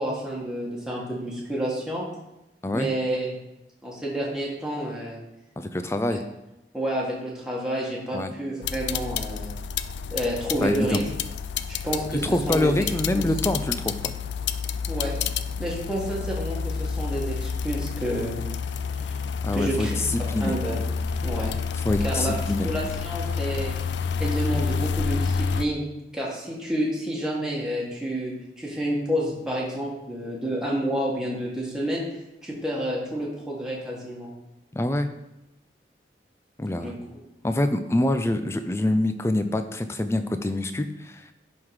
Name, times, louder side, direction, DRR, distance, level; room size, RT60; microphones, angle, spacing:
voice 1, 0.0-2.0 2.7-3.3 3.8-5.2 6.1-6.2 6.7-9.5 10.1-11.0 11.7-12.7 13.1-13.2 14.8-15.1 15.6-18.4 18.9-19.2 19.5-20.0 20.4-20.8 21.2-21.5 22.0-22.3 22.6-23.7 24.2-25.8 26.1-32.0 32.4-34.3 36.8-37.2, right 1 dB, 5° right, -4 dB, 1.5 m, -29 dB
voice 2, 5.6-6.2 8.1-8.3 10.6-11.0 12.2-14.1 19.4-20.6 21.9-22.7 34.7-35.1 36.6-36.9 37.4-41.2, left 1 dB, 15° left, 9 dB, 0.4 m, -25 dB
sound 1, 8.6-25.7, left 5 dB, 85° left, 0.4 m, -29 dB
11.0 x 3.7 x 4.8 m, 0.92 s
head